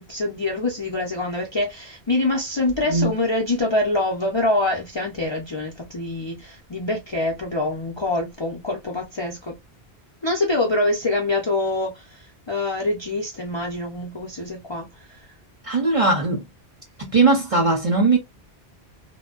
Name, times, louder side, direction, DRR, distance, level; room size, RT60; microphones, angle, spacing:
voice 1, 0.0-9.5 10.2-14.9 15.2-15.3, left 2 dB, 40° left, 0.4 m, -25 dB
voice 2, 15.6-16.4 17.0-18.2, right 3 dB, 40° right, 0.6 m, -19 dB
2.6 x 2.1 x 2.3 m
omnidirectional pair, 1.1 m